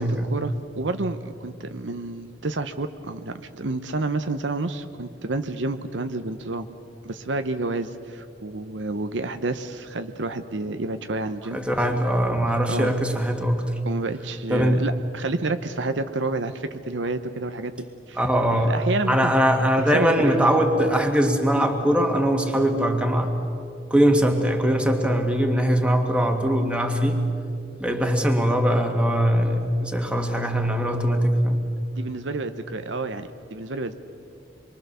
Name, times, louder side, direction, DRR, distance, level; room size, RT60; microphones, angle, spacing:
voice 1, 0.0-6.7 7.0-11.6 12.7-12.9 13.8-18.2 18.5-19.3 19.9-20.4 32.0-33.9, right 2 dB, 70° right, 9 dB, 0.9 m, -29 dB
voice 2, 11.5-13.7 14.5-14.8 18.2-18.8 19.1-23.3 23.9-27.2 27.8-31.6, equal, 5° right, 3 dB, 2.0 m, -21 dB
27.0 x 23.0 x 6.9 m, 2.6 s
head